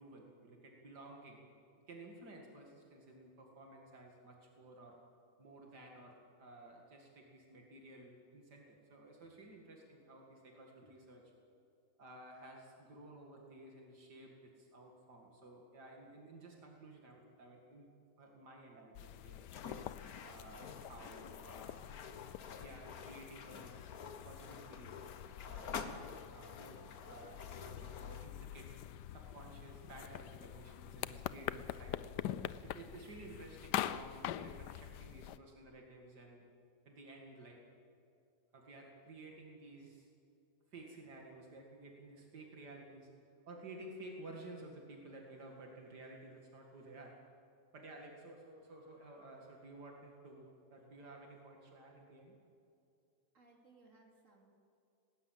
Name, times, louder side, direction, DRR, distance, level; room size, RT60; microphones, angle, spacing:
voice 1, 0.0-1.4 1.9-5.0 5.4-11.3 12.0-19.5 20.2-21.9 22.5-24.0 24.2-25.1 25.4-28.7 29.1-32.0 32.4-36.4 36.9-37.6 38.5-40.1 40.7-43.1 43.5-47.2 47.7-52.3, right 2 dB, 80° right, 0 dB, 2.8 m, -54 dB
sound 1, 18.9-35.4, left 12 dB, 90° left, 1.2 m, -45 dB
sound 2, 19.4-28.3, left 6 dB, 65° left, 1.6 m, -49 dB
voice 2, 53.3-54.4, right 3 dB, 50° right, 0 dB, 3.5 m, -64 dB
19.5 x 18.5 x 7.5 m, 2.6 s
omnidirectional pair, 1.7 m